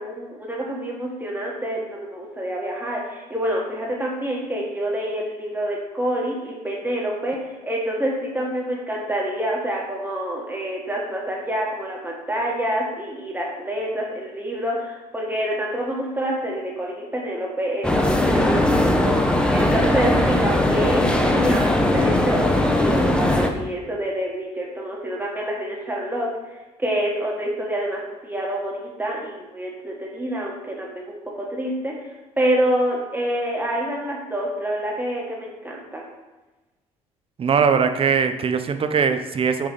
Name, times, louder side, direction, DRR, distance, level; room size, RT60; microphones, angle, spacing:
voice 1, 0.0-19.1 19.5-22.5 22.7-36.0, right 1 dB, 15° right, -3 dB, 1.5 m, -27 dB
sound 1, 17.8-23.5, left 1 dB, 5° left, 0.8 m, -19 dB
voice 2, 37.4-39.7, right 6 dB, 40° right, 8 dB, 0.6 m, -20 dB
5.7 x 3.4 x 4.8 m, 1.1 s
supercardioid pair, 65°, 14 cm